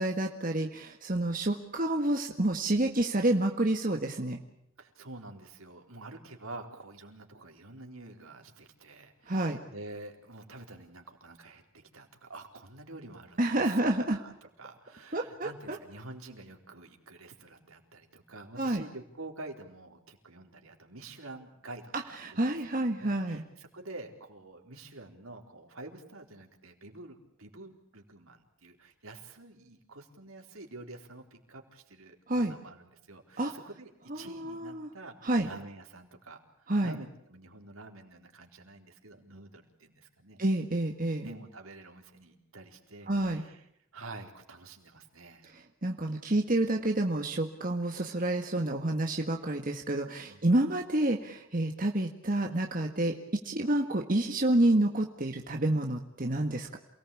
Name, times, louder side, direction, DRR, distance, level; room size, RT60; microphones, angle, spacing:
voice 1, 0.0-4.4 9.3-9.6 13.4-14.2 15.1-15.8 18.6-18.8 22.2-23.4 32.3-32.5 33.4-33.5 34.1-34.9 35.2-35.5 36.7-37.0 40.4-41.3 43.1-43.4 45.8-56.8, right 1 dB, 40° right, 3 dB, 1.8 m, -29 dB
voice 2, 4.8-40.4 41.2-43.7 43.9-45.5 50.3-50.5, right 2 dB, 80° right, 3 dB, 4.2 m, -48 dB
28.5 x 19.0 x 8.6 m, 0.76 s
head